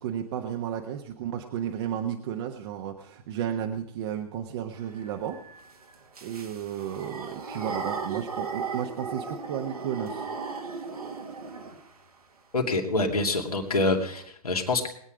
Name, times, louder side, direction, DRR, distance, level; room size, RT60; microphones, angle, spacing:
voice 1, 0.0-5.4 6.2-10.3, right 9 dB, 45° right, 3 dB, 1.3 m, -33 dB
sound 1, 4.7-12.1 13.6-13.7 14.0-14.2, right 5 dB, 75° right, 2.2 m, -37 dB
voice 2, 12.5-14.9, left 2 dB, 75° left, 1 dB, 2.6 m, -26 dB
21.5 x 8.9 x 5.0 m, 0.71 s
figure-of-eight pair, 110°, 19 cm